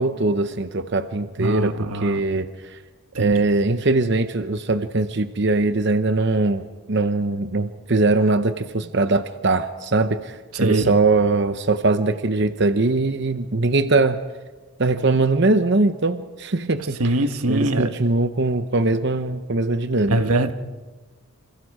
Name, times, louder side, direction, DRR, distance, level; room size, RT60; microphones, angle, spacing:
voice 1, 0.0-2.8 3.2-14.2 14.8-17.2 17.5-20.2, right 3 dB, 50° right, 10 dB, 0.8 m, -21 dB
voice 2, 1.4-2.2 3.1-3.4 10.6-10.9 17.0-17.9 20.1-20.5, right 2 dB, 85° right, 8 dB, 1.4 m, -22 dB
28.5 x 28.5 x 4.9 m, 1.3 s
head